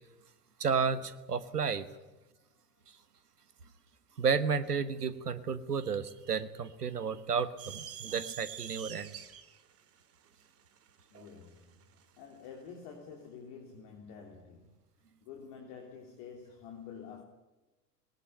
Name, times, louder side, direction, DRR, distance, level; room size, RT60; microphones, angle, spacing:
voice 1, 0.6-1.9 4.2-9.1 11.1-11.3, right 6 dB, 80° right, 1.3 m, -32 dB
sound 1, 7.6-12.1, right 9 dB, 30° right, 2.1 m, -46 dB
voice 2, 11.1-11.9 12.2-14.8 15.2-17.2, left 6 dB, 45° left, 3.3 m, -48 dB
19.5 x 18.0 x 9.3 m
figure-of-eight pair, 85°, 46 cm